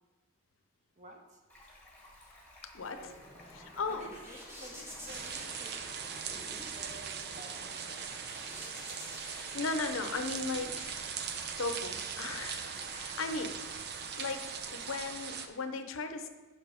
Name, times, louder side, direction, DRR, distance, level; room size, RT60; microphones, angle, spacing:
voice 1, 1.0-1.4 2.9-3.1 3.9-5.9 6.3-7.7, right 1 dB, 35° right, 2 dB, 1.2 m, -51 dB
Stream, 1.5-15.1, left 1 dB, 5° left, 1.4 m, -56 dB
sound 1, 3.0-10.7, equal, 10° right, 1.6 m, -50 dB
voice 2, 3.6-4.1 8.7-11.2 11.6-13.8 14.2-16.3, left 3 dB, 75° left, 8 dB, 0.7 m, -37 dB
sound 2, 5.1-15.5, right 6 dB, 55° right, 0.6 m, -40 dB
6.9 x 5.7 x 5.0 m, 1.2 s
head